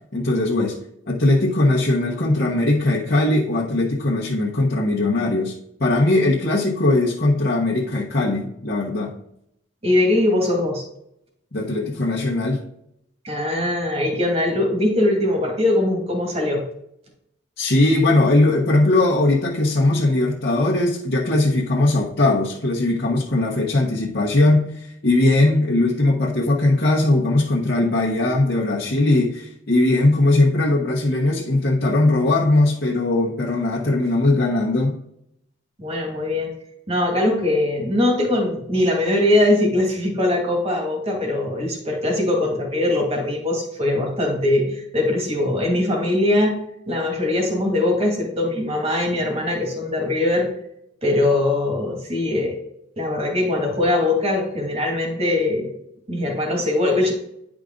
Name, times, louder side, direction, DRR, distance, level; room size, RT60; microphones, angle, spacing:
voice 1, 0.1-0.8 1.1-5.5 5.8-9.1 11.5-12.6 17.6-35.0, left 2 dB, 55° left, -5 dB, 1.2 m, -19 dB
voice 2, 9.8-10.8 13.2-16.6 35.8-36.5 36.9-46.6 46.9-50.5 51.0-52.6 53.0-55.7 56.1-57.1, left 1 dB, 30° right, 0 dB, 2.2 m, -21 dB
10.0 x 4.9 x 3.9 m, 0.74 s
head